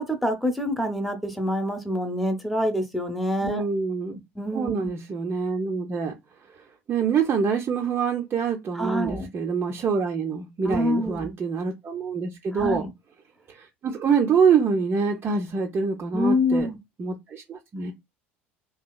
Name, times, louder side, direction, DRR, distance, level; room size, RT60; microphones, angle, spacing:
voice 1, 0.0-3.6 4.4-4.9 8.7-9.3 10.6-11.3 12.5-12.9 16.1-16.8, left 1 dB, ahead, 0.7 m, -26 dB
voice 2, 3.4-4.2 4.5-6.1 6.4-12.9 13.5-16.7 17.0-17.9, right 5 dB, 35° right, 0.5 m, -25 dB
2.9 x 2.7 x 2.3 m
figure-of-eight pair, 65°, 7 cm